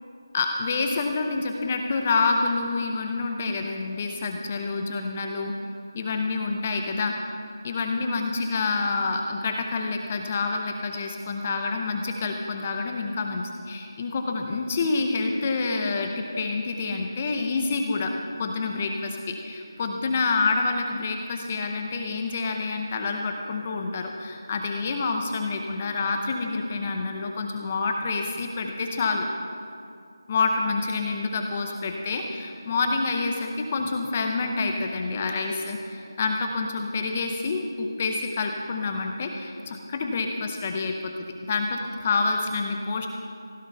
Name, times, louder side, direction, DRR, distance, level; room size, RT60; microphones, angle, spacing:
voice 1, 0.3-5.5 5.9-7.1 7.6-18.1 18.4-29.3 30.3-41.1 41.5-43.1, left 3 dB, 15° left, 3 dB, 0.7 m, -27 dB
16.0 x 11.0 x 5.6 m, 2.4 s
figure-of-eight pair, 175°, 2 cm